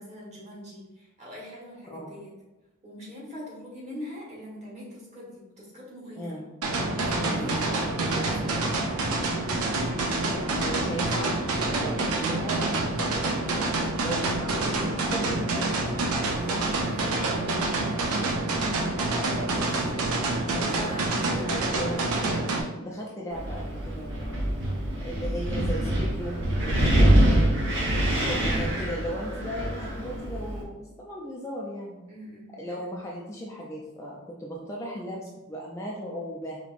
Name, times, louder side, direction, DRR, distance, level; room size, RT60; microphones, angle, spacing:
voice 1, 0.0-2.3 2.8-6.3 7.0-8.2 8.6-8.8 16.3-17.3 19.4-19.9 20.5-22.1 27.6-28.2 32.1-32.5, equal, 30° right, -5 dB, 1.4 m, -42 dB
sound 1, 6.6-22.6, right 2 dB, 75° right, 0.6 m, -27 dB
voice 2, 7.1-7.4 10.2-13.7 14.0-15.9 17.2-17.7 19.0-20.1 20.5-20.8 21.7-22.4 22.8-24.5 25.0-27.3 28.1-32.0 32.6-36.6, equal, 15° left, -3 dB, 0.4 m, -37 dB
Wind, 23.3-30.6, right 1 dB, 55° right, 1.0 m, -25 dB
5.0 x 2.9 x 2.5 m, 1.1 s
head